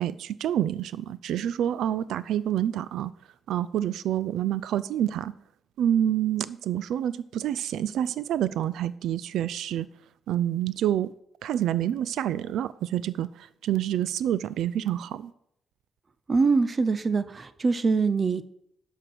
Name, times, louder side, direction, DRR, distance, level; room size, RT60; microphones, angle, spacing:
voice 1, 0.0-3.1 3.5-5.3 5.8-9.9 10.3-11.1 11.4-13.3 13.6-15.3, right 11 dB, 85° right, 16 dB, 0.4 m, -27 dB
voice 2, 16.3-18.5, right 4 dB, 25° right, 14 dB, 0.4 m, -24 dB
11.5 x 4.6 x 7.8 m, 0.74 s
cardioid pair, 175°, 0 cm